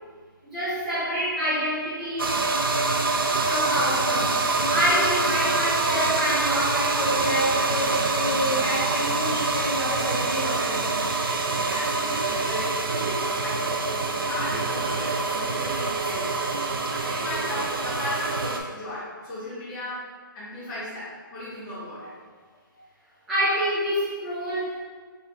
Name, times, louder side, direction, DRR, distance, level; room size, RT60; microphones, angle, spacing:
voice 1, 0.5-2.3 3.5-10.9 23.3-24.8, equal, ahead, -13 dB, 0.3 m, -27 dB
sound 1, 2.2-18.6, right 3 dB, 85° right, 0.5 m, -25 dB
voice 2, 11.6-20.1 20.3-22.1, left 1 dB, 15° left, -12 dB, 1.4 m, -36 dB
4.0 x 3.8 x 2.7 m, 1.5 s
hypercardioid pair, 175°, 12 cm